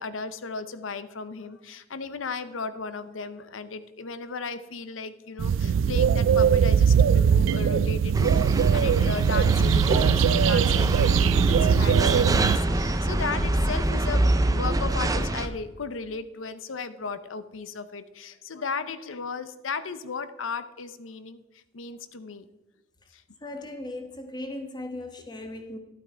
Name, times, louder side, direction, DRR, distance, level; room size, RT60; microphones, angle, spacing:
voice 1, 0.0-22.5 23.1-23.2, left 4 dB, 80° left, 13 dB, 0.7 m, -35 dB
sound 1, 5.4-12.6, right 7 dB, 70° right, 0.3 m, -21 dB
sound 2, 8.1-15.5, right 1 dB, 20° right, 0.6 m, -25 dB
voice 2, 23.4-25.8, left 1 dB, 20° left, 5 dB, 1.2 m, -37 dB
12.0 x 8.6 x 4.4 m, 1.1 s
head